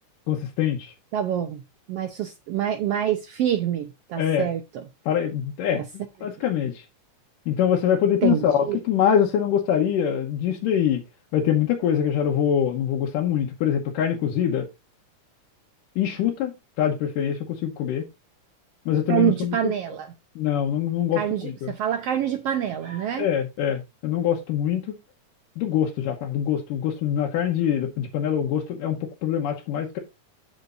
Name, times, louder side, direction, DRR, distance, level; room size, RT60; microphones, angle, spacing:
voice 1, 0.3-0.9 4.2-4.5 5.1-5.8 6.2-6.8 7.5-11.0 11.3-14.7 16.0-18.1 18.9-19.6 20.4-21.7 23.2-24.9 25.6-30.0, left 9 dB, 85° left, 2.7 m, -24 dB
voice 2, 1.1-1.6 1.9-4.8 5.7-5.8 8.2-8.4 8.7-8.8 19.1-20.1 21.1-23.3, right 10 dB, 85° right, 1.3 m, -26 dB
13.5 x 5.2 x 2.6 m
omnidirectional pair, 3.7 m